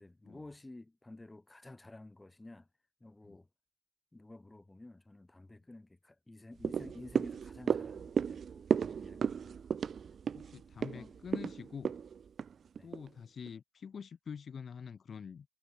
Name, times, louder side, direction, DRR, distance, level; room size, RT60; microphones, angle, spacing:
voice 1, 0.0-2.7 3.0-3.5 4.1-8.7 9.0-9.7 10.9-11.2 12.8-12.9, left 2 dB, 20° left, 5.3 m, -52 dB
sound 1, 6.6-13.1 13.5-13.6, right 7 dB, 65° right, 0.5 m, -35 dB
voice 2, 10.3-11.9 12.8-15.5, left 6 dB, 65° left, 5.3 m, -46 dB
cardioid pair, 90°, 0 cm